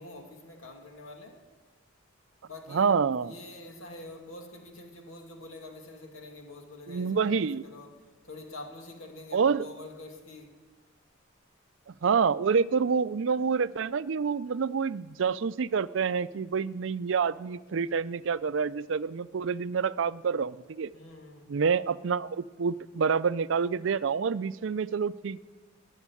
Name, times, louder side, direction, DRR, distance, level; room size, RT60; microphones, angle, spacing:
voice 1, 0.0-1.4 2.5-2.9 3.2-10.6 20.9-21.5, left 2 dB, 80° left, 2 dB, 2.5 m, -46 dB
voice 2, 2.7-3.3 6.9-7.6 9.3-9.7 12.0-20.9 21.5-25.4, right 6 dB, 65° right, 16 dB, 0.4 m, -27 dB
20.0 x 7.3 x 9.9 m, 1.4 s
head